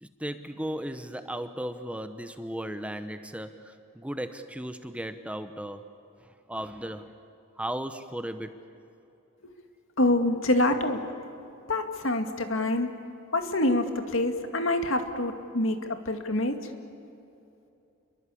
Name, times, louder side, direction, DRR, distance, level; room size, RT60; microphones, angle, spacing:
voice 1, 0.0-5.9 6.5-7.1 7.6-8.6, right 1 dB, 5° right, 9 dB, 0.9 m, -36 dB
voice 2, 10.0-11.0 11.7-12.9 13.3-16.6, left 1 dB, 65° left, 6 dB, 2.3 m, -26 dB
28.5 x 23.0 x 8.6 m, 2.7 s
head